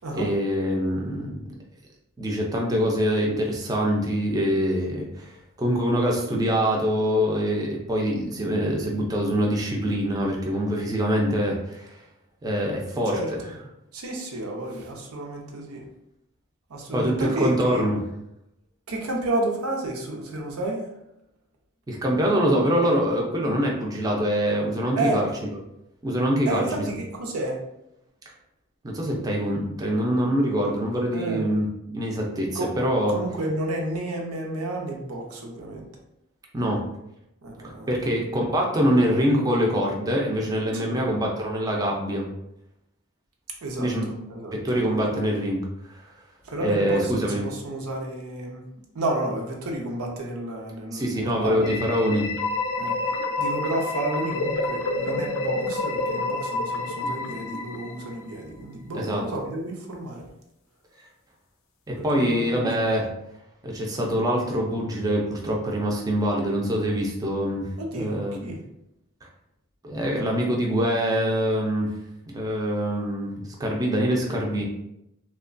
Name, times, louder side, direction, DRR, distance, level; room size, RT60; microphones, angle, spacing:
voice 1, 0.1-1.4 2.2-5.3 5.6-12.0 12.4-13.4 16.9-18.0 21.9-25.3 26.0-26.8 28.8-33.2 36.5-36.8 37.9-42.3 43.8-44.1 44.5-45.6 45.9-46.0 46.6-47.4 50.9-52.3 59.0-59.2 61.9-63.1 63.6-67.7 67.9-68.4 69.8-71.9 72.3-74.6, equal, 15° right, -1 dB, 0.4 m, -24 dB
voice 2, 13.1-13.5 13.9-15.8 16.7-17.9 18.9-20.9 25.0-25.2 26.5-27.6 31.1-31.5 32.5-32.7 33.1-35.9 37.4-38.0 40.7-41.0 43.6-45.1 46.4-48.6 48.9-51.7 52.8-60.2 61.9-62.6 62.9-63.0 67.8-68.6, right 1 dB, 90° right, 0 dB, 0.6 m, -31 dB
sound 1, 51.6-58.4, left 2 dB, 65° left, 0.4 m, -28 dB
2.8 x 2.2 x 2.4 m, 0.82 s
head